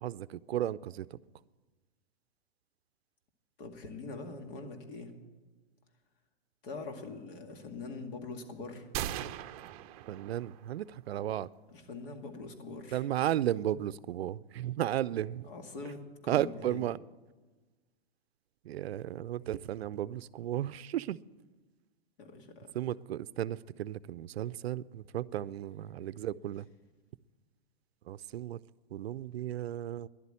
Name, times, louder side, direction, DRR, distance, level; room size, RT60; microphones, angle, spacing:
voice 1, 0.0-1.2 10.1-11.5 12.9-15.5 16.3-17.0 18.6-21.2 22.7-26.7 28.1-28.6 28.9-30.1, right 12 dB, 75° right, 0.5 m, -34 dB
voice 2, 3.6-5.1 6.6-8.9 11.7-13.1 15.5-16.8 22.2-22.7, left 3 dB, 55° left, 2.1 m, -43 dB
sound 1, 8.9-10.8, right 12 dB, 35° right, 0.6 m, -39 dB
11.0 x 8.2 x 9.8 m
hypercardioid pair, 135°, 31 cm